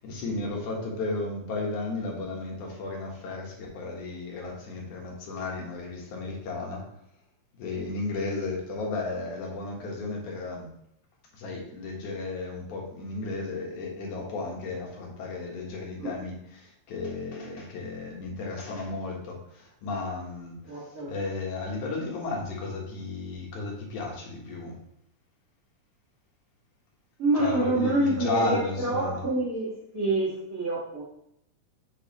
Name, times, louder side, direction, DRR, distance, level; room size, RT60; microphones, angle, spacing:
voice 1, 0.0-6.9 7.6-10.7 11.3-24.9 27.4-29.2, left 3 dB, 80° left, -1 dB, 2.9 m, -34 dB
voice 2, 20.7-21.1 27.2-31.0, right 2 dB, 35° right, -9 dB, 1.6 m, -27 dB
7.3 x 5.3 x 3.0 m, 0.77 s
omnidirectional pair, 3.4 m